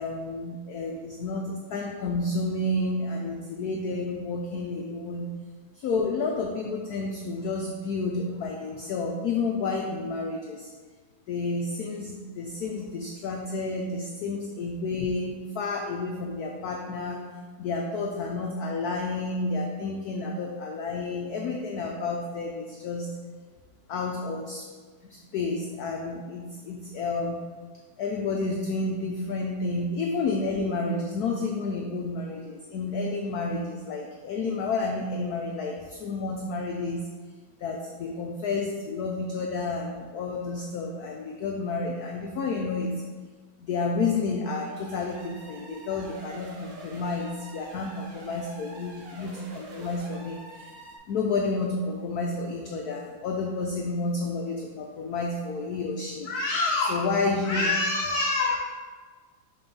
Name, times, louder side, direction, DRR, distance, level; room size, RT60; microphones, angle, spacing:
voice 1, 0.0-5.3 5.8-10.7 11.3-17.3 17.6-23.1 23.9-24.6 25.1-27.4 28.0-37.1 37.6-43.0 43.6-50.7 51.1-58.6, left 3 dB, 80° left, 1 dB, 0.8 m, -30 dB
sound 1, 44.5-51.0, right 2 dB, 90° right, 1.9 m, -46 dB
6.0 x 3.5 x 5.2 m, 1.5 s
omnidirectional pair, 2.3 m